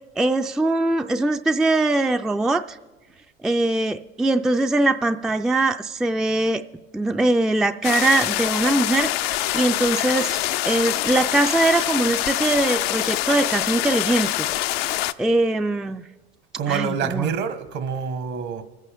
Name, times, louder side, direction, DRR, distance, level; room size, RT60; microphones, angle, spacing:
voice 1, 0.2-2.8 3.4-6.6 6.9-9.1 9.5-14.5 15.2-16.0 16.7-17.3, right 2 dB, ahead, 8 dB, 0.3 m, -21 dB
sound 1, 7.8-15.1, left 15 dB, 75° left, 0.5 m, -25 dB
voice 2, 16.5-18.6, right 6 dB, 60° right, 9 dB, 1.4 m, -26 dB
23.5 x 8.3 x 3.5 m, 1.2 s
hypercardioid pair, 75°, 30 cm